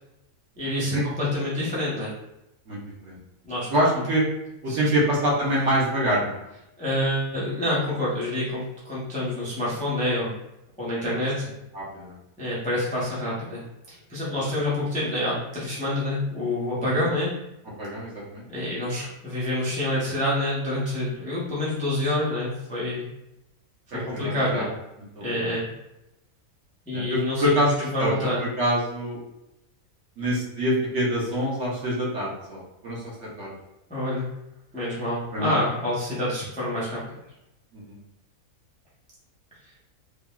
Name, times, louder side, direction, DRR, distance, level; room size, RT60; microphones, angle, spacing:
voice 1, 0.6-2.1 3.4-3.7 3.9-4.0 4.7-5.1 6.8-10.3 10.8-11.5 12.4-13.6 13.9-17.3 18.5-23.0 23.9-24.7 25.2-25.7 26.9-27.7 27.9-28.4 33.9-34.3 34.7-37.0, left 1 dB, 10° left, -8 dB, 0.5 m, -27 dB
voice 2, 2.7-3.2 3.7-4.2 4.6-6.4 11.7-12.2 14.4-14.5 16.8-17.0 17.8-18.4 23.9-24.7 25.1-25.5 26.9-27.7 28.0-28.1 28.4-29.2 30.2-33.5 35.3-35.6 37.7-38.0, equal, 60° right, -5 dB, 1.1 m, -26 dB
3.3 x 2.3 x 2.2 m, 0.90 s
omnidirectional pair, 1.5 m